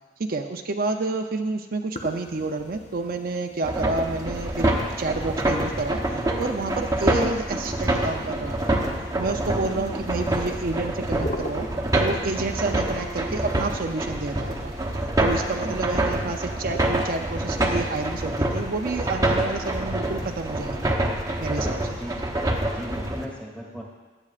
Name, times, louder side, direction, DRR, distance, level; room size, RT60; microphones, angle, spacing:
voice 1, 0.2-8.7 9.2-11.7 11.9-14.7 15.2-20.9 21.4-22.0, right 3 dB, 55° right, 4 dB, 0.6 m, -29 dB
sound 1, 1.9-18.8, left 1 dB, 40° left, 0.9 m, -43 dB
sound 2, 3.6-23.3, right 1 dB, 20° right, 0.9 m, -26 dB
voice 2, 9.5-9.8 15.6-15.9 22.0-22.1 22.6-23.8, equal, 5° left, -1 dB, 1.7 m, -37 dB
16.0 x 11.0 x 2.5 m, 1.3 s
head